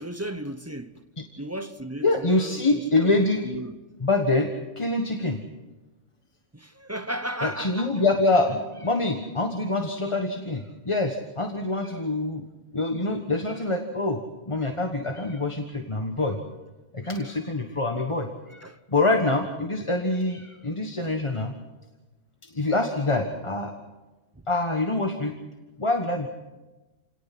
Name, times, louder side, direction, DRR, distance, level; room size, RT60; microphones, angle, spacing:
voice 1, 0.0-1.0 1.4-3.8 6.5-8.0 18.6-18.8 24.3-24.4, right 1 dB, 15° right, 0.7 m, -35 dB
voice 2, 2.0-3.4 4.0-5.4 7.4-12.4 12.7-16.4 16.9-21.5 22.4-23.7 24.5-25.3 25.8-26.3, left 2 dB, 25° left, 1.3 m, -25 dB
29.0 x 18.5 x 6.0 m
omnidirectional pair, 1.3 m